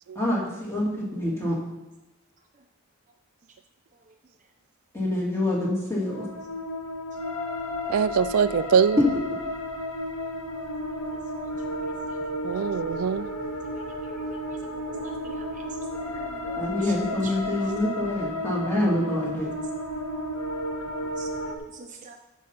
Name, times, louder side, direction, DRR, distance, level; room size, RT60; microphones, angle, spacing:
voice 1, 0.1-1.6 4.9-6.3 9.0-9.1 16.6-19.5, left 1 dB, 10° left, -4 dB, 2.8 m, -26 dB
sound 1, 6.0-21.5, left 1 dB, 75° left, 1.8 m, -33 dB
voice 2, 7.9-9.0 12.4-13.3, right 7 dB, 70° right, 14 dB, 0.3 m, -23 dB
voice 3, 15.0-15.6 16.1-16.9 17.2-17.5 21.2-21.3 21.7-22.2, right 4 dB, 35° right, 3 dB, 0.7 m, -44 dB
13.5 x 5.6 x 5.8 m, 1.0 s
head